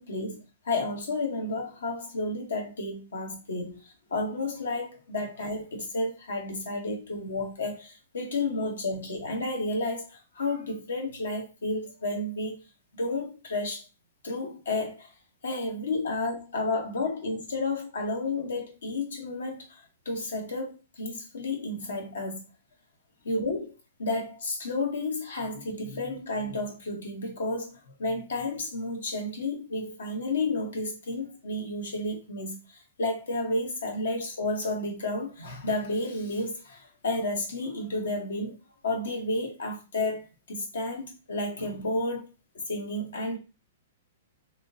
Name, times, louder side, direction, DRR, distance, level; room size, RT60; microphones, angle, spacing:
voice 1, 0.0-12.6 13.0-13.8 14.2-15.1 15.4-22.4 23.2-23.7 24.0-38.6 38.8-42.3 42.7-43.4, left 2 dB, 80° left, 1.2 m, -31 dB
3.5 x 2.7 x 2.8 m
hypercardioid pair, 120°, 0 cm